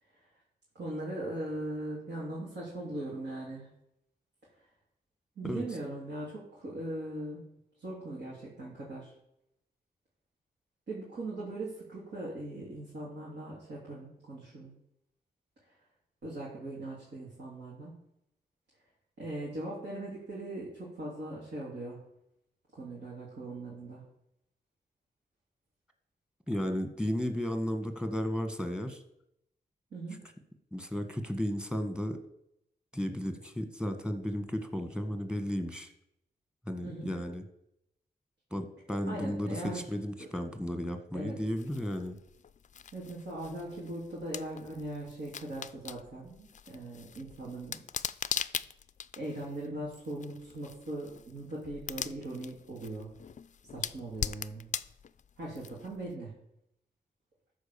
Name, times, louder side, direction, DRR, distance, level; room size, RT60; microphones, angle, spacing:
voice 1, 0.8-3.7 5.4-7.5 7.8-9.1 10.9-14.7 15.6-15.7 16.2-18.0 19.2-22.0 22.7-24.0 29.9-30.2 36.8-37.2 39.1-39.9 40.2-40.3 41.1-41.4 42.9-47.8 49.2-53.1 53.7-54.7 55.4-56.4, right 1 dB, 75° right, -7 dB, 3.5 m, -40 dB
voice 2, 26.5-29.0 30.7-32.2 32.9-35.9 36.6-37.4 38.5-42.2, equal, 5° right, 7 dB, 1.5 m, -34 dB
sound 1, 41.6-56.1, left 7 dB, 45° left, 0.4 m, -42 dB
13.0 x 4.7 x 7.0 m, 0.80 s
cardioid pair, 80°, 18 cm